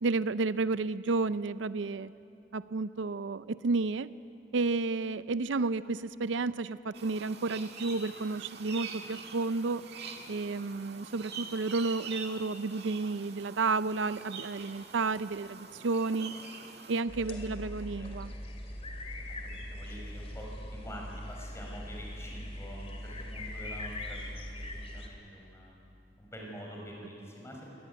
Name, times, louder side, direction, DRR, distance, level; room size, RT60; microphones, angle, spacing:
voice 1, 0.0-2.1 2.5-4.1 4.5-9.8 10.3-16.3 16.9-18.3, right 3 dB, 85° right, 15 dB, 0.5 m, -31 dB
sound 1, 6.9-17.0, right 5 dB, 60° right, 1.9 m, -45 dB
sound 2, 17.1-25.1, left 1 dB, 35° left, 2.4 m, -41 dB
voice 2, 17.3-18.3 19.4-24.6 24.9-25.8 26.2-27.7, equal, 15° left, -1 dB, 5.5 m, -46 dB
23.5 x 18.5 x 9.6 m, 2.6 s
head